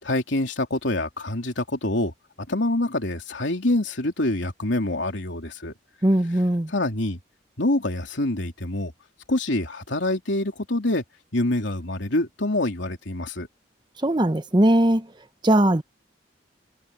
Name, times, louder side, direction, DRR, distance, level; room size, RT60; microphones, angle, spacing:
voice 1, 0.0-2.1 2.5-5.7 6.7-7.2 7.6-8.9 9.3-11.0 11.3-13.5, left 1 dB, 85° left, 3.3 m, -26 dB
voice 2, 6.0-6.7 14.0-15.0 15.4-15.8, right 1 dB, 25° right, 0.9 m, -19 dB
head